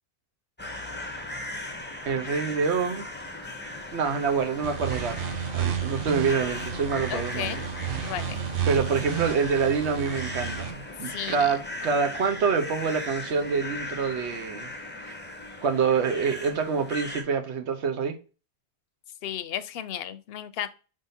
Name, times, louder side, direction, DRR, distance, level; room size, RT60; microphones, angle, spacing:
sound 1, 0.6-17.2, left 2 dB, 15° left, 0.5 m, -38 dB
voice 1, 2.1-3.1 3.9-7.6 8.7-14.7 15.1-15.2 15.6-18.2, right 5 dB, 80° right, 1.1 m, -26 dB
sound 2, 4.6-10.7, right 8 dB, 60° right, 0.7 m, -32 dB
voice 2, 7.1-7.7 8.0-8.4 11.1-11.5 19.2-20.7, left 10 dB, 65° left, 0.7 m, -34 dB
5.2 x 3.6 x 2.7 m
omnidirectional pair, 1.1 m